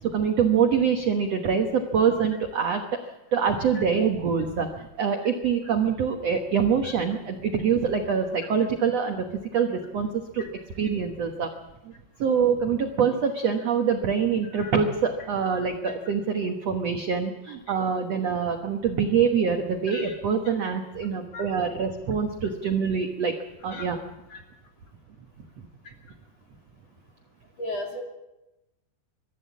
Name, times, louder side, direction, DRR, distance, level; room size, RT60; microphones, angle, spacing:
voice 1, 0.0-10.1 10.3-10.5 10.8-11.5 11.8-11.9 12.2-23.3 23.6-24.0 25.6-25.7, right 6 dB, 65° right, 4 dB, 1.7 m, -25 dB
voice 2, 27.6-28.0, left 1 dB, 40° left, 1 dB, 3.9 m, -35 dB
23.0 x 13.5 x 8.4 m, 0.95 s
omnidirectional pair, 4.7 m